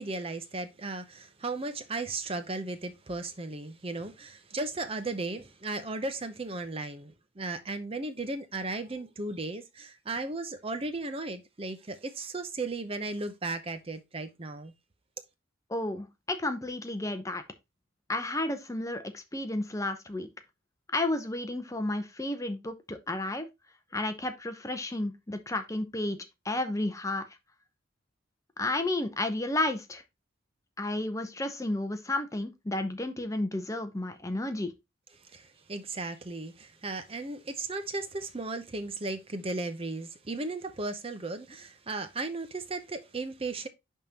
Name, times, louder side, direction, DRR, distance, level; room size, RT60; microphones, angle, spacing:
voice 1, 0.0-14.7 35.2-43.7, right 2 dB, 25° right, 0.6 m, -36 dB
voice 2, 15.7-17.4 18.1-20.3 20.9-23.5 23.9-26.2 26.4-27.2 28.6-30.0 30.8-34.7, left 2 dB, 15° left, 0.7 m, -32 dB
10.5 x 3.6 x 2.8 m
head